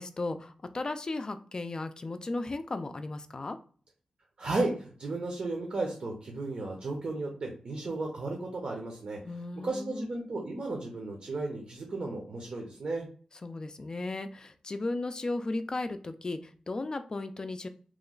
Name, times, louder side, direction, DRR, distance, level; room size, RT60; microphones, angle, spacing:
voice 1, 0.0-3.6 9.2-10.1 13.4-17.7, left 2 dB, 35° left, 9 dB, 0.3 m, -35 dB
voice 2, 4.4-9.2 9.6-13.1, right 2 dB, 65° right, 1 dB, 0.8 m, -34 dB
3.1 x 2.1 x 3.8 m, 0.42 s
wide cardioid pair, 135°, 2 cm